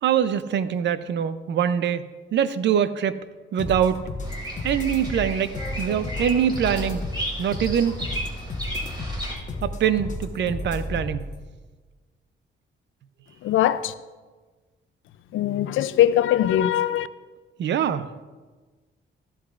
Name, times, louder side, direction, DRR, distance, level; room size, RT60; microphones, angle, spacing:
voice 1, 0.0-3.2 3.5-4.1 4.6-7.0 7.4-8.0 9.6-11.3 17.6-18.1, right 9 dB, 65° right, 0.5 m, -24 dB
sound 1, 3.6-11.3, left 2 dB, 40° left, 1.2 m, -33 dB
Bird vocalization bird call bird song, 4.2-9.3, equal, 20° right, 2.5 m, -34 dB
voice 2, 13.4-13.9 15.3-17.1, left 11 dB, 90° left, 0.5 m, -21 dB
13.5 x 11.5 x 2.5 m
cardioid pair, 130°, 20 cm